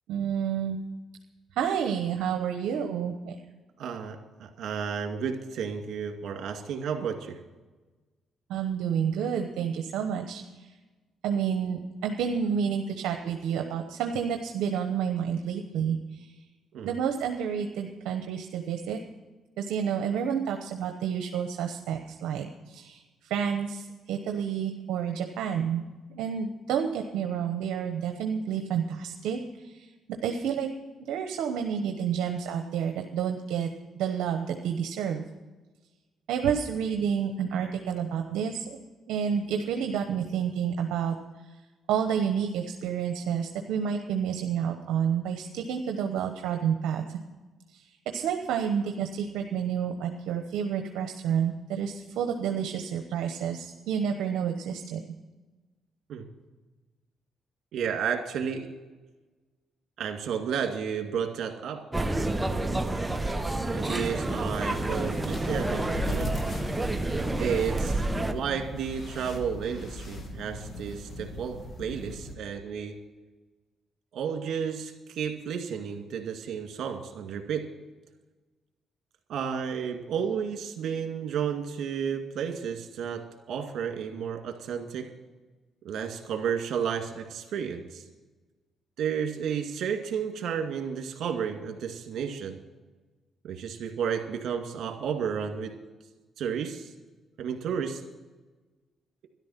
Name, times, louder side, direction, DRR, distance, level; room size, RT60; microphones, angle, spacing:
voice 1, 0.1-0.8 1.6-3.4 8.5-10.7 11.2-16.3 16.8-19.0 19.6-25.8 26.1-29.9 30.2-30.7 31.1-33.7 34.0-35.2 36.3-38.6 39.1-41.1 41.9-47.0 48.1-55.0, right 7 dB, 85° right, 4 dB, 0.9 m, -29 dB
voice 2, 3.8-7.4 16.7-17.0 56.1-56.3 57.7-58.7 60.0-61.8 63.7-66.3 67.4-68.0 68.3-72.9 74.1-77.6 79.3-83.2 83.5-85.1 85.8-88.0 89.0-92.6 93.4-95.7 96.4-96.9 97.4-98.0, right 7 dB, 70° right, 4 dB, 2.2 m, -32 dB
sound 1, 61.9-68.3, right 2 dB, 10° right, 1.1 m, -29 dB
sound 2, 64.6-72.3, left 1 dB, 45° left, 2.1 m, -38 dB
13.0 x 11.5 x 5.8 m, 1.2 s
cardioid pair, 90°, 0 cm